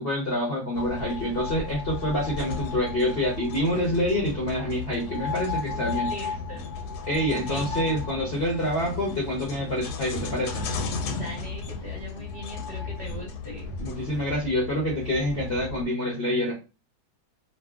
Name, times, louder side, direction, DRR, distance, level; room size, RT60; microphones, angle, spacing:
voice 1, 0.0-6.1 7.1-10.7 13.8-16.5, equal, 55° left, -3 dB, 0.7 m, -27 dB
sound 1, 0.7-15.8, left 4 dB, 75° left, 1.0 m, -34 dB
voice 2, 5.7-6.7 7.3-7.8 11.1-13.7, right 1 dB, 50° right, -3 dB, 0.8 m, -40 dB
2.6 x 2.5 x 2.3 m, 0.30 s
omnidirectional pair, 1.9 m